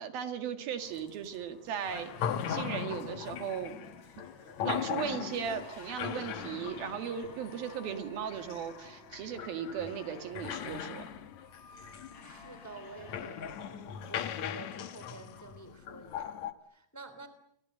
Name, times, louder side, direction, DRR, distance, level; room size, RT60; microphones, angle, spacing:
voice 1, 0.0-3.8 4.2-4.3 4.6-11.0, right 8 dB, 75° right, 8 dB, 3.8 m, -37 dB
sound 1, 0.8-14.2, left 3 dB, 45° left, 5.6 m, -53 dB
sound 2, 1.9-16.5, left 9 dB, 60° left, 2.2 m, -39 dB
voice 2, 12.0-17.3, right 3 dB, 5° left, 10 dB, 2.3 m, -50 dB
30.0 x 24.5 x 8.0 m, 0.73 s
omnidirectional pair, 4.3 m